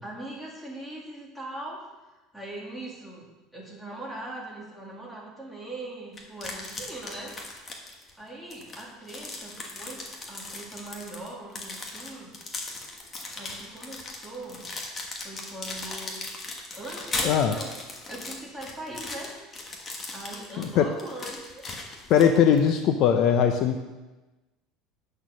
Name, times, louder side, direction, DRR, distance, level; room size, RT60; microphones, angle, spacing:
voice 1, 0.0-1.8 2.3-3.3 3.5-7.4 8.2-10.0 10.3-12.3 13.4-14.7 15.2-16.2 16.7-17.7 18.1-19.3 20.1-21.6 21.9-22.0, right 1 dB, ahead, -5 dB, 2.1 m, -40 dB
sound 1, 6.2-8.1 8.5-22.7, left 2 dB, 20° left, 1.3 m, -38 dB
voice 2, 17.2-17.5 20.6-20.9 22.1-23.8, left 8 dB, 45° left, 6 dB, 0.6 m, -20 dB
8.8 x 6.4 x 6.3 m, 1.1 s
cardioid pair, 165°, 0 cm